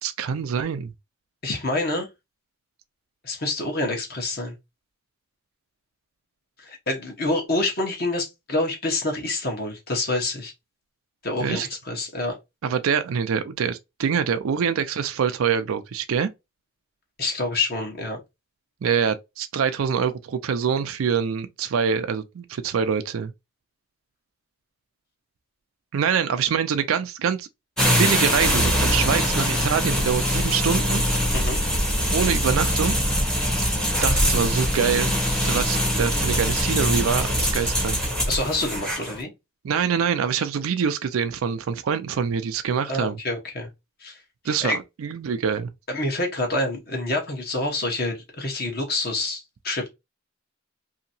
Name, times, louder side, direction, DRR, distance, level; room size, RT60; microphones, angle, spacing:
voice 1, 0.0-0.9 11.4-11.7 12.6-16.3 18.8-23.3 25.9-27.5 27.9-31.0 32.1-33.0 34.0-35.2 35.4-38.0 39.6-43.2 44.4-45.7, right 7 dB, 90° right, 0.4 m, -25 dB
voice 2, 1.4-2.1 3.2-4.5 6.6-10.5 11.2-12.4 17.2-18.2 31.3-31.6 38.3-39.3 42.9-43.7 44.0-44.2 44.6-44.8 45.9-49.9, left 2 dB, 50° left, 1.0 m, -27 dB
sound 1, 27.8-39.2, equal, 5° left, 0.7 m, -23 dB
2.8 x 2.7 x 2.6 m
head